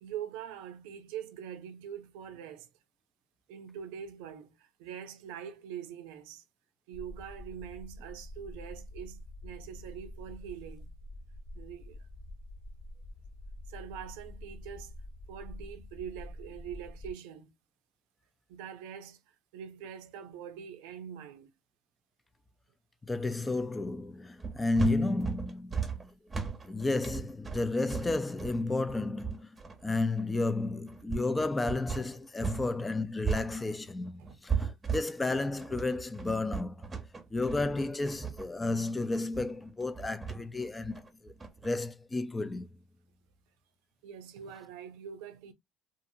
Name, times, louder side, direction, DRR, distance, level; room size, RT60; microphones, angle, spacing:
voice 1, 0.0-2.7 3.5-6.4 6.9-10.9 11.5-12.1 13.7-14.9 15.3-17.5 18.5-19.2 19.5-21.5 34.2-34.7 44.0-45.5, right 8 dB, 90° right, 0.5 m, -44 dB
sound 1, 6.9-17.1, left 1 dB, 55° left, 0.9 m, -46 dB
voice 2, 23.0-26.0 26.6-29.5 29.8-36.9 37.3-41.3 41.6-42.7, left 2 dB, 15° left, 0.4 m, -32 dB
sound 2, 24.4-32.7 32.9-41.7, right 5 dB, 20° right, 0.8 m, -36 dB
2.7 x 2.5 x 2.6 m
supercardioid pair, 100°, 0 cm